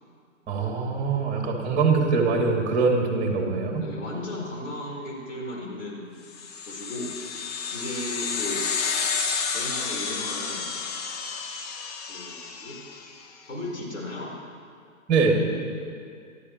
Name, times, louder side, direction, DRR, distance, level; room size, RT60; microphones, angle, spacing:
voice 1, 0.5-3.8 15.1-15.3, right 4 dB, 20° right, 0 dB, 2.8 m, -23 dB
voice 2, 3.8-6.1 6.7-7.1 7.7-8.7 9.5-10.7 12.1-12.8 13.5-14.3, left 1 dB, 70° left, -4 dB, 4.6 m, -35 dB
sound 1, 6.3-13.2, left 5 dB, 30° left, 0.9 m, -31 dB
28.0 x 13.0 x 3.3 m, 2.2 s
figure-of-eight pair, 140°, 40 cm